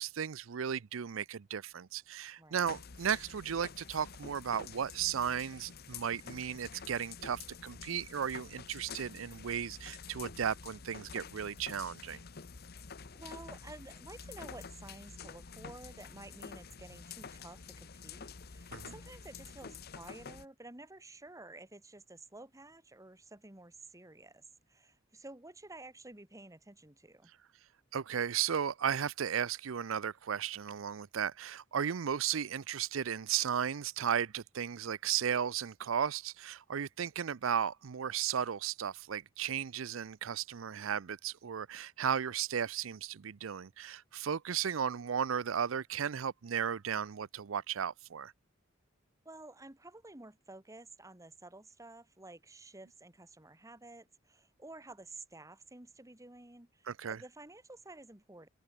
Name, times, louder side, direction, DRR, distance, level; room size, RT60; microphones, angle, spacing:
voice 1, 0.0-12.2 18.7-18.9 27.9-48.3 56.9-57.2, right 8 dB, 85° right, 0.5 m, -35 dB
voice 2, 2.4-2.7 13.1-27.3 49.3-58.5, right 2 dB, 15° right, 2.0 m, -52 dB
sound 1, 2.6-20.5, left 5 dB, 50° left, 0.9 m, -49 dB
open air
head